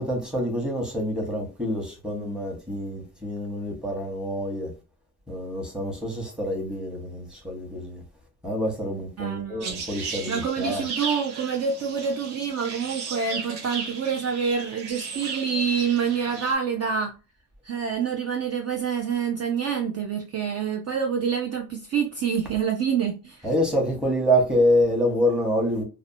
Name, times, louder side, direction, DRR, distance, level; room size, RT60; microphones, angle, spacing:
voice 1, 0.0-4.7 5.3-8.0 8.4-10.9 23.4-25.8, equal, ahead, 0.9 m, -26 dB
voice 2, 9.2-9.8 10.3-17.1 17.6-23.5, right 6 dB, 45° right, 0.4 m, -27 dB
sound 1, 9.6-16.5, right 5 dB, 80° right, 0.8 m, -35 dB
2.6 x 2.1 x 2.6 m
cardioid pair, 125°, 39 cm